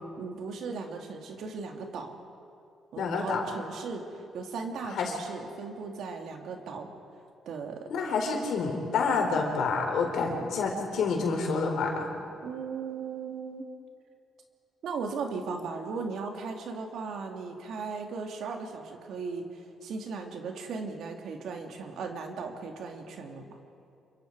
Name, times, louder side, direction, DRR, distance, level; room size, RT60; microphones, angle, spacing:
voice 1, 0.2-2.1 2.9-6.9 7.5-7.9 12.4-13.6 14.8-23.5, right 4 dB, 75° right, 3 dB, 2.5 m, -37 dB
voice 2, 3.0-3.4 5.0-5.2 7.9-12.1, left 4 dB, 75° left, 2 dB, 4.2 m, -28 dB
27.5 x 23.5 x 4.8 m, 2.5 s
cardioid pair, 90°, 0 cm